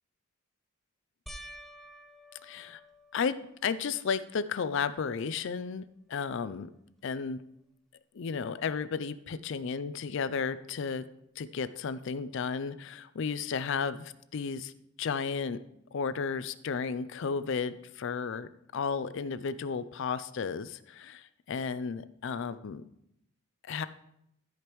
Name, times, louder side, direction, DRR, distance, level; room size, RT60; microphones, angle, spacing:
sound 1, 1.3-3.9 4.5-5.0 5.4-5.5 8.7-8.8, equal, ahead, 0.4 m, -50 dB
voice 1, 2.4-2.8 3.1-3.3 3.6-6.7 7.0-7.4 8.1-11.1 11.4-14.7 15.0-15.6 15.9-22.8 23.7-23.9, left 5 dB, 60° left, 14 dB, 0.4 m, -33 dB
13.5 x 5.0 x 3.1 m, 0.77 s
head